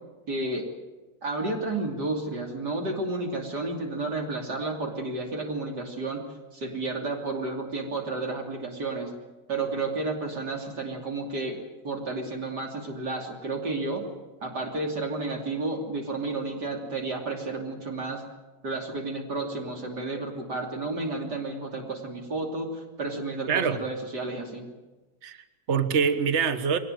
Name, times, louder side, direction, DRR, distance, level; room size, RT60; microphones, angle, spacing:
voice 1, 0.3-0.7 1.2-6.2 6.5-9.1 9.5-14.0 14.4-18.2 18.6-24.7, right 2 dB, 70° right, 1 dB, 3.6 m, -31 dB
voice 2, 23.5-23.8 25.2-26.8, right 6 dB, 40° right, 10 dB, 1.5 m, -25 dB
22.5 x 19.0 x 9.2 m, 1.2 s
omnidirectional pair, 1.9 m